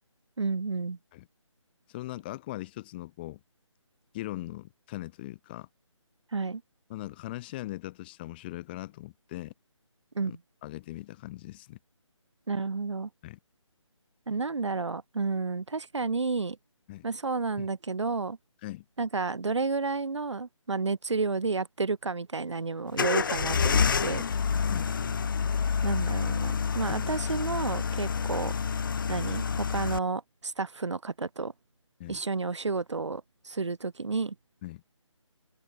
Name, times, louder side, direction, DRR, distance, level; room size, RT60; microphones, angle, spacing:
voice 1, 0.4-1.0 6.3-6.6 10.1-10.3 12.5-13.1 14.3-16.6 17.0-18.4 19.0-24.2 25.8-28.5 29.1-31.5 32.1-34.3, right 4 dB, 65° right, 1.2 m, -31 dB
voice 2, 1.9-3.4 4.1-5.7 6.9-9.5 10.2-10.4 10.6-11.8 13.2-13.4 16.9-17.1 17.6-17.7 18.6-18.8 24.7-24.9 32.0-32.2 34.6-34.8, left 17 dB, 20° left, 2.2 m, -40 dB
sound 1, 22.9-30.0, left 6 dB, 40° left, 1.9 m, -28 dB
figure-of-eight pair, 150°, 16 cm